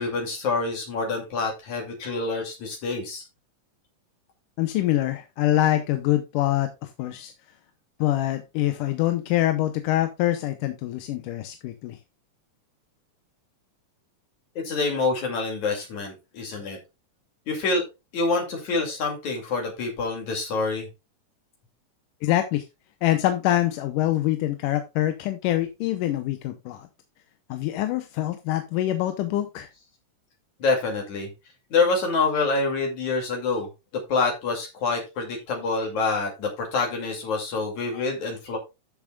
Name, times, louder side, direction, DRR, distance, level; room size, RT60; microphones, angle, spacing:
voice 1, 0.0-3.2 14.6-16.8 17.5-17.8 18.1-20.9 30.6-31.3 31.7-33.7 34.1-38.6, left 3 dB, 60° left, 2 dB, 3.7 m, -26 dB
voice 2, 4.6-7.3 8.0-12.0 22.2-22.6 23.0-26.9 27.5-29.7, left 14 dB, 85° left, 8 dB, 2.4 m, -25 dB
13.5 x 7.2 x 2.3 m, 0.24 s
omnidirectional pair, 3.8 m